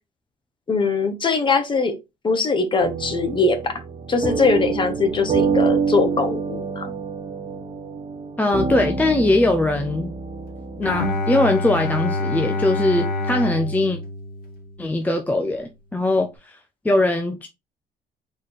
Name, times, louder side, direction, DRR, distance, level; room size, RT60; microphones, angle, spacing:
voice 1, 0.7-1.9 2.2-3.7 4.1-6.9, left 4 dB, 30° left, 1.1 m, -21 dB
sound 1, 2.8-11.1, right 5 dB, 35° right, 0.8 m, -27 dB
voice 2, 8.4-10.1 10.8-14.0 14.8-16.6 16.8-17.5, left 2 dB, 10° left, 0.5 m, -21 dB
Bowed string instrument, 10.8-15.0, left 2 dB, 60° left, 1.9 m, -26 dB
4.2 x 3.2 x 4.0 m
cardioid pair, 110°, 17 cm